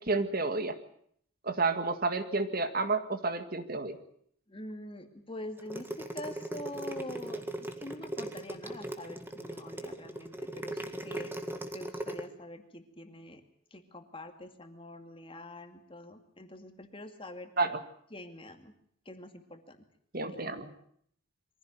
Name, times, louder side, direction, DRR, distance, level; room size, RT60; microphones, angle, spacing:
voice 1, 0.1-0.8 1.4-4.0 17.6-17.7 20.1-20.7, right 3 dB, 45° right, 9 dB, 1.9 m, -30 dB
voice 2, 4.5-11.3 11.7-13.4 13.7-17.5 18.1-18.7 19.1-19.8 20.3-20.4, left 1 dB, 25° left, 7 dB, 2.3 m, -45 dB
sound 1, 5.6-12.2, right 1 dB, 10° right, 1.9 m, -38 dB
23.5 x 16.0 x 9.1 m, 0.65 s
head